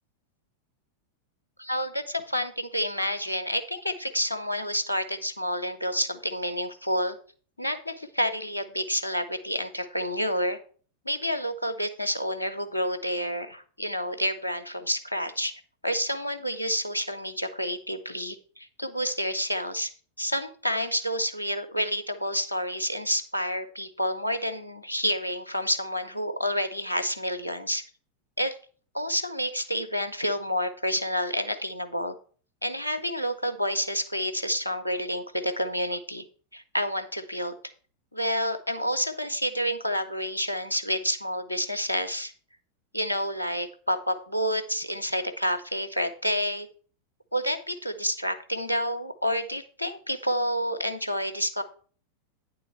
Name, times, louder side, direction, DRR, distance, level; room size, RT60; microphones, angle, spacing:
voice 1, 1.6-7.2 7.6-10.6 11.0-15.5 15.8-19.9 20.2-27.8 28.4-28.6 28.9-32.1 32.6-36.2 36.5-37.6 38.1-42.3 42.9-46.7 47.3-51.6, equal, 85° left, 10 dB, 0.7 m, -29 dB
9.2 x 3.9 x 5.5 m, 0.43 s
figure-of-eight pair, 90°, 0 cm